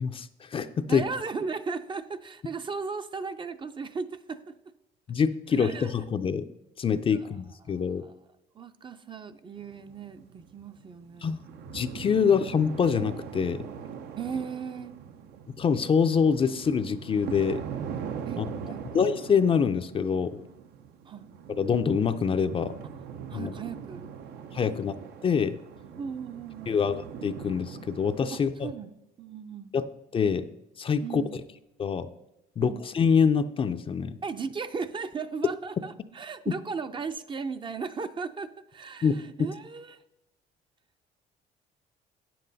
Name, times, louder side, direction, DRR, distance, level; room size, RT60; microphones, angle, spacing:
voice 1, 0.0-1.0 5.1-6.4 6.8-8.0 11.2-11.4 11.7-13.7 15.5-17.6 18.4-18.5 18.9-20.4 21.5-22.7 23.3-23.5 24.5-24.9 25.2-25.6 26.7-28.5 29.7-29.8 30.1-30.5 30.8-31.2 31.8-32.1 32.6-34.2 39.0-39.5, left 6 dB, 30° left, 10 dB, 0.5 m, -25 dB
voice 2, 0.9-4.6 5.5-6.0 7.1-7.4 7.6-8.2 8.5-11.4 14.2-14.9 18.3-19.0 21.1-21.3 23.3-24.1 24.7-24.9 26.0-26.8 28.3-28.9 29.2-29.7 31.0-31.4 32.6-32.8 34.2-40.0, right 5 dB, 30° right, 10 dB, 0.5 m, -37 dB
sound 1, 9.6-28.4, right 7 dB, 75° right, 0.7 m, -41 dB
9.1 x 7.6 x 4.0 m, 0.93 s
cardioid pair, 110°, 17 cm